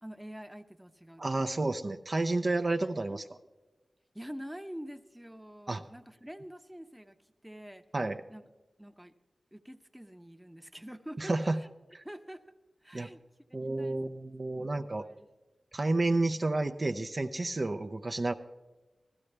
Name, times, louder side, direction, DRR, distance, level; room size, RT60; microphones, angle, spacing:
voice 1, 0.0-1.7 3.1-3.2 4.1-7.2 7.4-7.8 8.3-8.4 8.8-9.1 9.5-11.7 12.0-12.4 12.8-13.2 13.5-14.0 14.5-15.3, equal, 5° right, 7 dB, 0.8 m, -46 dB
voice 2, 1.2-3.2 5.7-5.8 7.9-8.2 11.2-11.6 11.9-12.0 12.9-13.1 13.5-15.0 15.7-18.3, right 2 dB, 45° right, 7 dB, 0.5 m, -30 dB
15.5 x 13.0 x 3.3 m, 1.1 s
cardioid pair, 55°, 0 cm